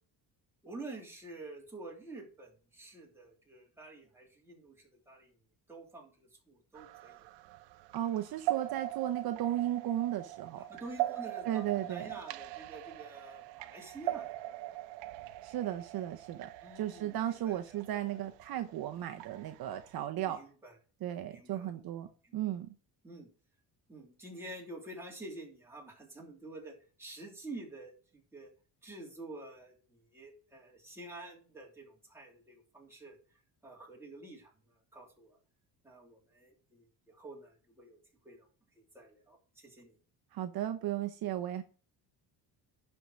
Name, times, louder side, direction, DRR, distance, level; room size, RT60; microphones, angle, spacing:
voice 1, 0.6-5.3 5.7-7.2 10.7-14.3 16.6-18.0 20.3-20.7 21.3-21.7 22.2-22.4 23.0-23.3 23.9-28.5 28.8-33.2 33.6-35.4 35.8-38.0 38.2-38.5 38.8-40.0, right 2 dB, 5° right, -2 dB, 3.2 m, -49 dB
sound 1, 6.7-20.0, right 16 dB, 90° right, 0.7 m, -41 dB
voice 2, 7.9-10.7 11.5-12.1 15.4-16.5 16.8-20.4 21.0-22.7 40.3-41.6, right 12 dB, 60° right, 7 dB, 0.9 m, -35 dB
11.0 x 4.7 x 6.2 m, 0.39 s
cardioid pair, 160°, 41 cm